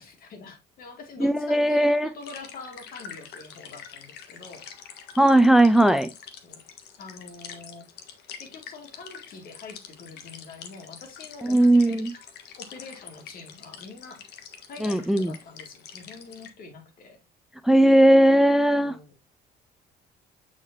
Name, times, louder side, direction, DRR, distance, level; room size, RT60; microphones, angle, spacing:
voice 1, 0.0-4.7 6.4-6.6 7.0-7.9 8.4-14.2 14.7-17.2 18.8-19.2, left 4 dB, 60° left, 2.6 m, -45 dB
voice 2, 1.2-2.1 5.2-6.1 11.4-12.1 14.8-15.3 17.6-19.0, right 1 dB, ahead, 0.5 m, -18 dB
sound 1, 2.2-16.5, left 7 dB, 75° left, 1.5 m, -45 dB
8.4 x 5.0 x 2.8 m
cardioid pair, 110°, 17 cm